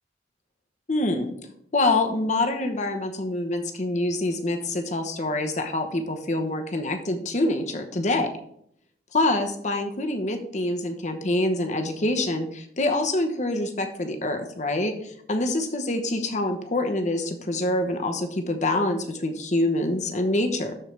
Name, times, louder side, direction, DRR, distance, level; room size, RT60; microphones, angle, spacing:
voice 1, 0.9-1.4 1.7-8.3 9.1-20.7, left 2 dB, 40° left, 5 dB, 1.0 m, -26 dB
12.5 x 4.5 x 3.4 m, 0.70 s
head